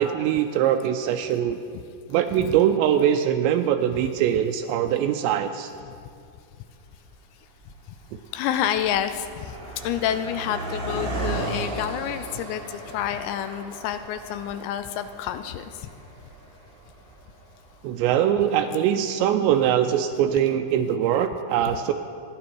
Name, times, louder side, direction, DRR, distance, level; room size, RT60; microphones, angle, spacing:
voice 1, 0.0-1.6 2.1-5.7 17.8-21.9, right 10 dB, 85° right, 6 dB, 2.8 m, -22 dB
Car passing by, 6.0-6.1 6.9-7.2 7.4-17.8, right 2 dB, 45° right, 0.6 m, -36 dB
voice 2, 8.3-9.6 9.8-12.6 12.9-15.7, left 10 dB, 80° left, 10 dB, 2.7 m, -28 dB
26.0 x 10.0 x 4.6 m, 2.3 s
omnidirectional pair, 5.2 m